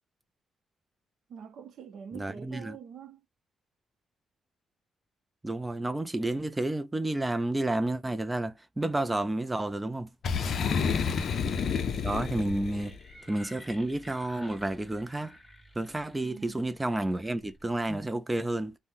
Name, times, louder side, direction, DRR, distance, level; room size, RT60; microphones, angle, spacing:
voice 1, 1.3-3.2 10.7-11.4 16.2-16.6, right 7 dB, 65° right, 0.6 m, -45 dB
voice 2, 2.1-2.8 5.4-10.1 12.0-12.9 13.3-15.3 15.8-18.7, right 1 dB, 15° right, 0.3 m, -30 dB
Boom, 10.2-13.0, left 6 dB, 55° left, 0.4 m, -29 dB
sound 1, 12.8-18.1, left 1 dB, 15° left, 1.3 m, -52 dB
2.6 x 2.1 x 3.4 m
cardioid pair, 100°, 0 cm